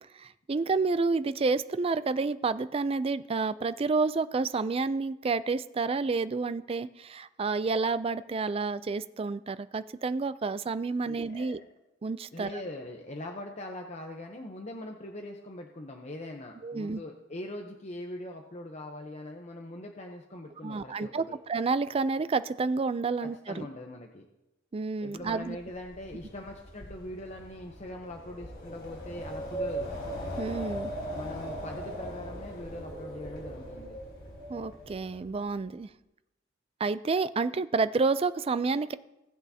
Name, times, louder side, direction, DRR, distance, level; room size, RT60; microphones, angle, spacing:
voice 1, 0.1-11.6 12.0-12.6 16.6-17.0 20.6-23.7 24.7-25.6 30.4-30.9 34.5-35.9 36.8-38.9, right 4 dB, 30° right, 14 dB, 0.3 m, -29 dB
voice 2, 11.0-11.6 12.3-21.4 23.2-24.3 25.0-29.9 31.1-34.0, left 1 dB, 35° left, 2 dB, 0.8 m, -42 dB
Wind, 25.3-35.4, right 1 dB, 55° left, 4.0 m, -39 dB
18.5 x 8.4 x 2.8 m, 0.93 s
head